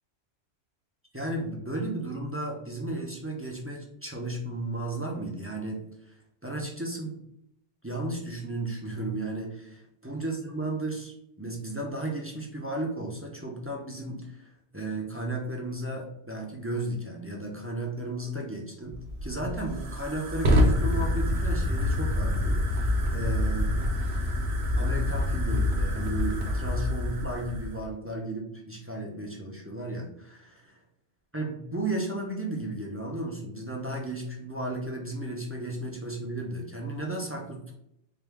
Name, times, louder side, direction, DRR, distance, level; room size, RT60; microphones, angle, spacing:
voice 1, 1.1-6.1 6.4-7.2 7.8-19.0 19.2-23.7 24.8-30.7 31.3-37.7, right 2 dB, 15° right, -1 dB, 0.5 m, -34 dB
Fire, 18.9-27.8, left 1 dB, 55° right, 0.9 m, -26 dB
4.8 x 2.3 x 3.4 m, 0.77 s
omnidirectional pair, 1.2 m